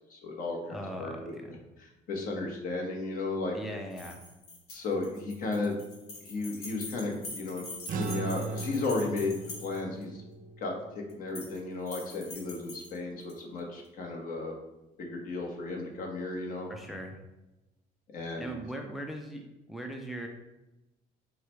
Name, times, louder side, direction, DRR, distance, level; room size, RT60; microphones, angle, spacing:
voice 1, 0.0-1.2 1.8-3.6 4.7-5.7 6.2-10.2 10.6-14.5 15.0-16.7 18.1-18.5, left 3 dB, 55° left, 0 dB, 1.1 m, -34 dB
voice 2, 0.7-1.6 3.5-4.2 16.7-17.2 18.4-19.4 19.7-20.3, right 1 dB, ahead, 3 dB, 0.4 m, -39 dB
sound 1, 3.9-10.0 11.1-11.6 11.9-13.4, left 2 dB, 75° left, 1.3 m, -44 dB
sound 2, 7.9-12.5, right 4 dB, 50° right, 0.5 m, -39 dB
4.7 x 2.2 x 4.4 m, 1.0 s
cardioid pair, 110°, 17 cm